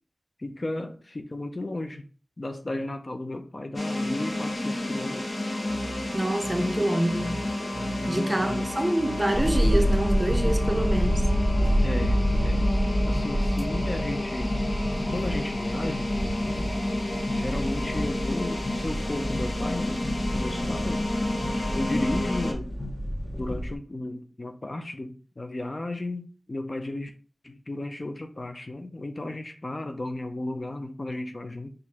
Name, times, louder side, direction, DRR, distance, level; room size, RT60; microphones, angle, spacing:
voice 1, 0.4-2.0 2.4-5.3 8.0-8.6 11.8-12.8 13.1-14.6 15.1-16.1 17.3-21.0 21.7-22.7 23.4-27.1 27.4-31.7, left 2 dB, 40° left, 0.5 m, -34 dB
sound 1, 3.7-22.5, left 1 dB, 60° left, 1.0 m, -30 dB
sound 2, 5.6-9.5, right 1 dB, 40° right, 1.0 m, -41 dB
voice 2, 6.1-7.4 8.1-11.2, right 1 dB, 20° right, 0.6 m, -26 dB
sound 3, 9.3-23.7, equal, 20° left, 1.2 m, -28 dB
4.5 x 2.5 x 4.1 m
wide cardioid pair, 80°, 0 cm